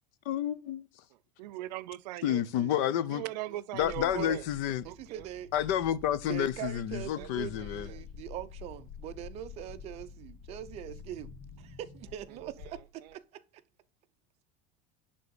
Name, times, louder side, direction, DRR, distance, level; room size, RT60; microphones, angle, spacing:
voice 1, 0.3-0.8 2.2-3.2 3.7-4.9 5.5-7.9, left 11 dB, 50° left, 0.8 m, -30 dB
voice 2, 1.1-2.4 3.1-4.5 4.8-5.3 7.1-8.0 12.3-13.2, right 16 dB, 85° right, 0.6 m, -41 dB
voice 3, 2.4-2.8 3.5-3.6 3.8-4.4 4.8-5.5 6.2-11.3 11.6-13.4, right 12 dB, 30° right, 0.6 m, -42 dB
sound 1, 3.8-13.2, left 6 dB, 70° left, 2.2 m, -48 dB
10.5 x 3.7 x 7.0 m
supercardioid pair, 170°, 21 cm